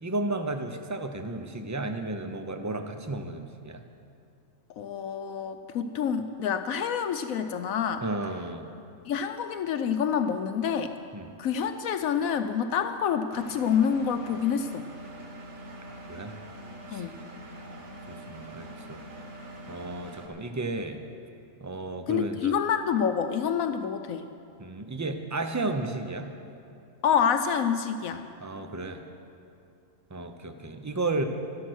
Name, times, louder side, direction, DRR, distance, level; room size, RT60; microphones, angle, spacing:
voice 1, 0.0-3.8 8.0-8.7 11.1-11.3 15.9-16.4 16.9-17.1 17.6-19.0 19.7-21.0 21.6-22.5 24.6-26.3 28.4-29.0 30.1-31.2, right 2 dB, 25° right, 7 dB, 0.4 m, -33 dB
voice 2, 4.8-8.0 9.0-10.9 11.4-14.9 16.9-17.2 22.1-24.3 27.0-28.3, left 7 dB, 75° left, 8 dB, 1.0 m, -27 dB
Engine, 13.3-20.3, right 1 dB, 55° right, 1.7 m, -44 dB
12.5 x 12.0 x 6.3 m, 2.6 s
omnidirectional pair, 1.5 m